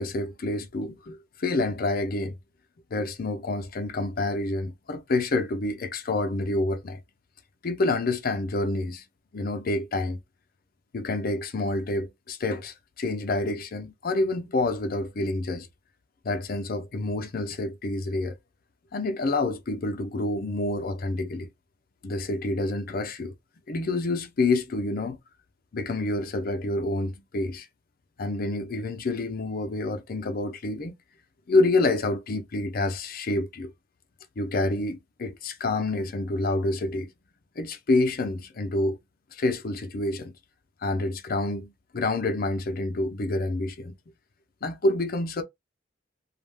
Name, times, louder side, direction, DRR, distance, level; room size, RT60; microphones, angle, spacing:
voice 1, 0.0-2.3 2.9-7.0 7.6-9.0 9.3-10.2 10.9-15.7 16.2-18.4 18.9-21.5 22.0-23.3 23.7-25.2 25.7-27.7 28.2-30.9 31.5-33.7 34.4-37.1 37.6-39.0 39.3-40.3 40.8-43.9 44.6-45.4, left 2 dB, 50° left, 0.5 m, -28 dB
2.4 x 2.1 x 3.2 m
head